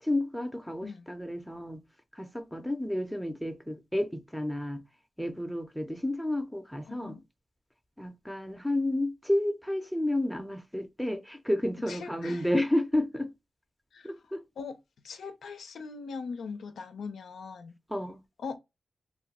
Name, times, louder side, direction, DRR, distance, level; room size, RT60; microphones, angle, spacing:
voice 1, 0.0-1.8 2.1-4.8 5.2-7.2 8.0-13.3 14.0-14.4 17.9-18.2, left 1 dB, ahead, 0.6 m, -31 dB
voice 2, 6.9-7.2 11.9-12.4 13.9-14.1 14.6-14.8 15.0-17.7 18.4-18.6, left 5 dB, 85° left, 0.5 m, -40 dB
2.5 x 2.2 x 4.0 m
cardioid pair, 75°, 0 cm